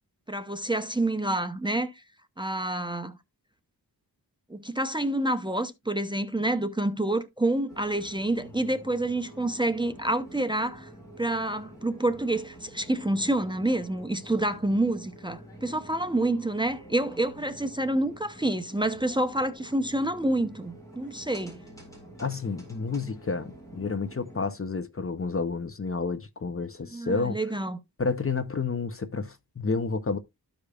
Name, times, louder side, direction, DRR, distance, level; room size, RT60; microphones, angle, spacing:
voice 1, 0.3-1.9 2.4-3.1 4.5-10.9 11.2-21.6 26.9-27.8, right 1 dB, 10° right, 0.6 m, -28 dB
sound 1, 7.7-24.5, right 1 dB, 10° left, 4.1 m, -48 dB
voice 2, 22.2-27.4 28.0-30.2, left 4 dB, 35° left, 0.7 m, -30 dB
13.5 x 5.0 x 2.3 m
wide cardioid pair, 105°, 40 cm